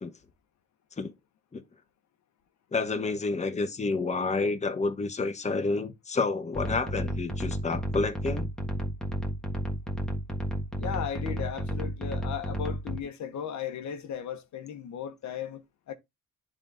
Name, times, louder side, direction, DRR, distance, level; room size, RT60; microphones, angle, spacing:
voice 1, 2.7-8.5, left 3 dB, 25° left, 1.1 m, -29 dB
sound 1, 6.5-13.0, equal, ahead, 1.4 m, -32 dB
voice 2, 10.8-15.9, left 8 dB, 65° left, 1.0 m, -36 dB
10.5 x 3.8 x 2.5 m
cardioid pair, 90°, 30 cm